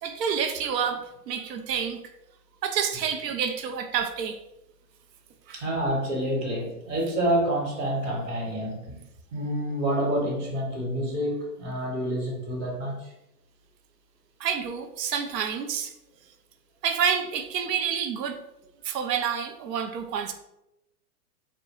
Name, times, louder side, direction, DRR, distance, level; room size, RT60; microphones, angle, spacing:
voice 1, 0.0-2.1 2.6-4.4 5.5-5.6 14.4-15.9 16.8-18.4 18.8-20.3, right 7 dB, 90° right, 6 dB, 0.6 m, -28 dB
voice 2, 5.5-9.1 9.3-13.1, right 1 dB, 50° right, -2 dB, 1.1 m, -28 dB
2.7 x 2.2 x 2.8 m, 0.88 s
hypercardioid pair, 140°, 48 cm